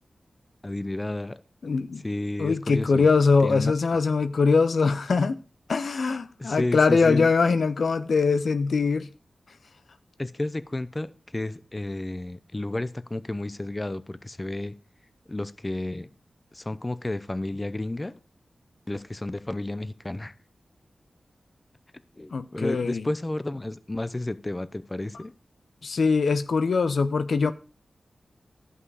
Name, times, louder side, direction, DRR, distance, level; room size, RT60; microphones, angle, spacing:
voice 1, 0.6-1.4 2.0-3.1 3.4-3.7 6.4-7.3 10.2-14.7 15.3-16.1 16.5-18.2 18.9-20.4 22.2-25.3, left 2 dB, 25° left, 0.6 m, -31 dB
voice 2, 1.6-2.0 2.4-5.4 5.7-9.1 22.3-23.0 25.8-27.5, left 4 dB, 80° left, 0.5 m, -22 dB
12.0 x 5.6 x 4.8 m
cardioid pair, 55°, 0 cm